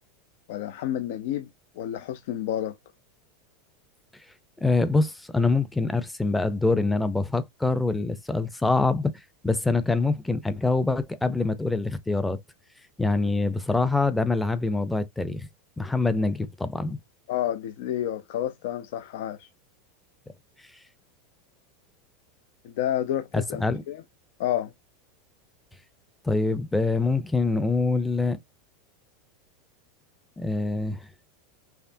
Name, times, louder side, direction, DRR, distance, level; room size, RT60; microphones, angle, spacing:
voice 1, 0.5-1.5 1.8-2.8 17.3-19.5 22.6-24.0 24.4-24.7, left 11 dB, 70° left, 0.6 m, -30 dB
voice 2, 4.6-9.1 9.4-12.4 13.0-15.5 15.8-17.0 23.3-23.8 26.2-28.4 30.4-31.1, left 3 dB, 5° left, 0.6 m, -25 dB
5.7 x 2.0 x 2.6 m
supercardioid pair, 130°, 0 cm